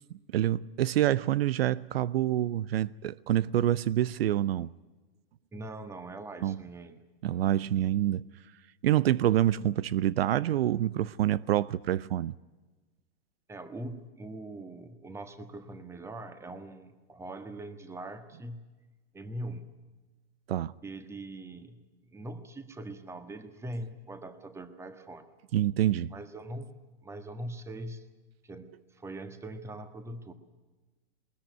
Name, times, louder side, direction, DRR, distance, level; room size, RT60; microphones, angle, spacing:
voice 1, 0.3-4.7 6.4-6.6 7.2-8.2 8.8-12.3 20.5-20.7 25.5-26.1, right 12 dB, 75° right, 0.7 m, -27 dB
voice 2, 5.5-7.0 13.5-18.6 19.1-19.7 20.8-21.8 22.1-25.3 26.1-26.7 27.0-28.0 28.4-30.3, right 1 dB, 10° right, 1.6 m, -42 dB
20.5 x 19.5 x 9.3 m
hypercardioid pair, 140°, 30 cm